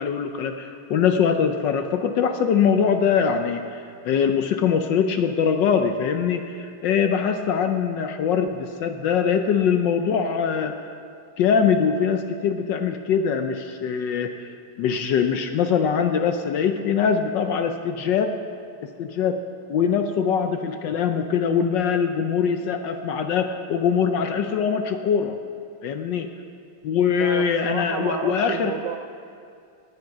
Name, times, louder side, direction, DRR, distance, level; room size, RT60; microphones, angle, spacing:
voice 1, 0.0-10.7 11.4-18.3 18.8-19.4 19.7-25.4 25.8-26.3 26.8-28.8, left 7 dB, 70° left, 7 dB, 1.1 m, -22 dB
voice 2, 27.2-29.0, right 8 dB, 80° right, 6 dB, 1.0 m, -31 dB
17.0 x 8.7 x 5.9 m, 2.4 s
omnidirectional pair, 2.4 m